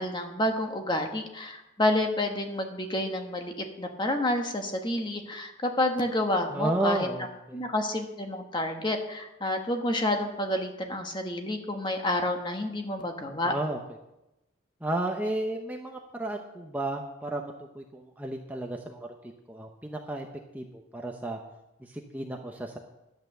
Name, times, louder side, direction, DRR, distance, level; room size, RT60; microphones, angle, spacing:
voice 1, 0.0-7.1 7.5-13.5, left 1 dB, 25° left, 4 dB, 1.3 m, -29 dB
voice 2, 6.5-7.6 13.4-13.8 14.8-19.1 19.5-20.3 20.5-21.4 21.8-22.8, right 1 dB, 10° right, 2 dB, 0.8 m, -33 dB
11.5 x 8.7 x 6.8 m, 0.93 s
head